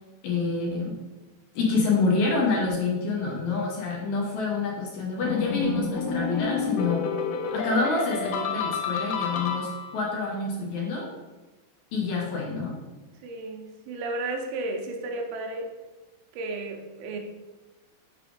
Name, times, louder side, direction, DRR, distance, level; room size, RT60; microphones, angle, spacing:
voice 1, 0.2-1.0 1.6-7.1 7.5-11.1 11.9-12.8, left 3 dB, 70° left, -2 dB, 1.9 m, -27 dB
sound 1, 5.2-10.1, left 5 dB, 90° left, 1.8 m, -29 dB
voice 2, 13.2-15.7 16.3-17.2, right 2 dB, 75° right, 3 dB, 2.2 m, -33 dB
5.9 x 3.3 x 5.0 m, 1.1 s
omnidirectional pair, 4.2 m